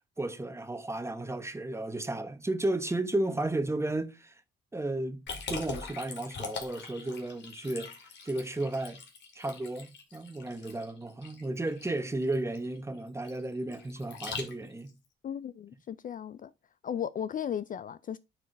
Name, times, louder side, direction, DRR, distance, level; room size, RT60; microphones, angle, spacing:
voice 1, 0.2-4.4 4.7-5.2 5.5-7.9 8.2-9.0 9.3-14.9, right 2 dB, 15° right, 1.1 m, -33 dB
Liquid, 5.3-14.9, left 5 dB, 65° left, 2.3 m, -42 dB
voice 2, 15.2-16.5 16.8-18.2, left 9 dB, 45° left, 0.4 m, -35 dB
9.4 x 4.7 x 3.4 m
cardioid pair, 90°, 20 cm